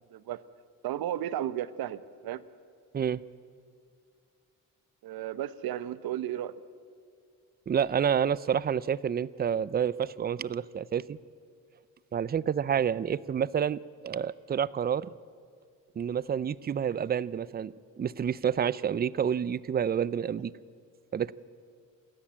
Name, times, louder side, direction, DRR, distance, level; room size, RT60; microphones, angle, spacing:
voice 1, 0.1-0.4 0.8-2.4 5.0-6.5, right 12 dB, 90° right, 16 dB, 0.9 m, -34 dB
voice 2, 7.7-11.2 12.1-15.1 16.0-20.5 21.1-21.3, right 8 dB, 30° right, 20 dB, 0.4 m, -29 dB
27.5 x 13.5 x 8.7 m, 2.2 s
cardioid pair, 120°, 35 cm